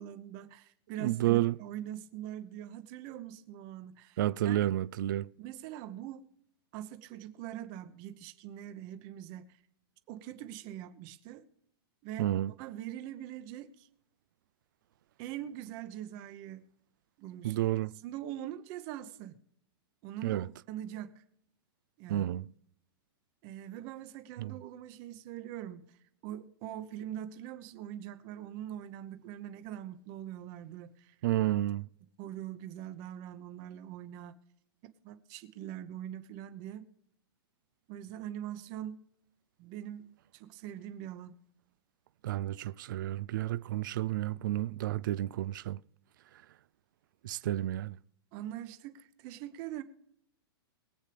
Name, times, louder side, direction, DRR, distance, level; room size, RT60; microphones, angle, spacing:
voice 1, 0.0-4.2 4.4-4.6 5.4-6.3 6.7-9.5 10.1-11.4 12.0-12.3 12.6-13.9 15.2-16.6 17.2-17.6 18.0-19.4 20.0-21.2 22.0-22.3 23.4-25.8 26.2-31.1 32.2-34.4 35.0-36.9 37.9-39.0 39.6-41.3 48.3-49.8, right 11 dB, 25° right, 0.9 m, -43 dB
voice 2, 1.0-1.6 4.2-5.3 12.2-12.5 17.4-17.9 20.2-20.5 22.1-22.5 24.4-24.6 31.2-31.9 42.2-45.8 46.3-46.4 47.2-48.0, right 14 dB, 50° right, 0.4 m, -31 dB
22.5 x 8.3 x 3.4 m
supercardioid pair, 180°, 13 cm